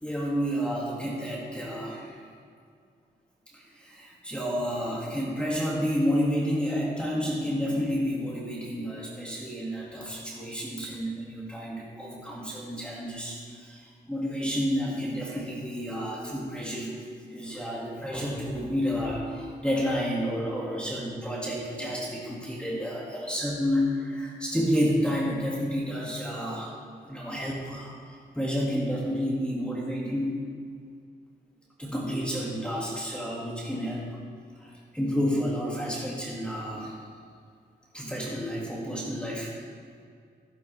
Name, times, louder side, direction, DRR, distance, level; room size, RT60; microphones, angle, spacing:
voice 1, 0.0-2.2 3.5-17.0 17.3-26.7 27.0-28.0 28.3-30.5 31.8-34.2 34.6-37.0 37.9-39.5, equal, 5° left, -5 dB, 2.1 m, -30 dB
15.0 x 9.3 x 3.4 m, 2.2 s
wide cardioid pair, 100°, 19 cm